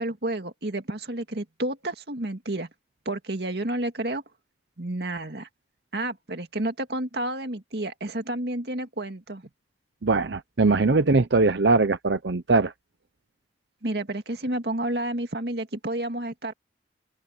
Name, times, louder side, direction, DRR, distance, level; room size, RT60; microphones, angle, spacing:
voice 1, 0.0-2.7 3.1-4.2 4.8-5.5 5.9-9.4 13.8-16.5, right 1 dB, 65° right, 2.2 m, -30 dB
voice 2, 10.0-12.7, right 3 dB, 85° right, 0.8 m, -21 dB
open air
head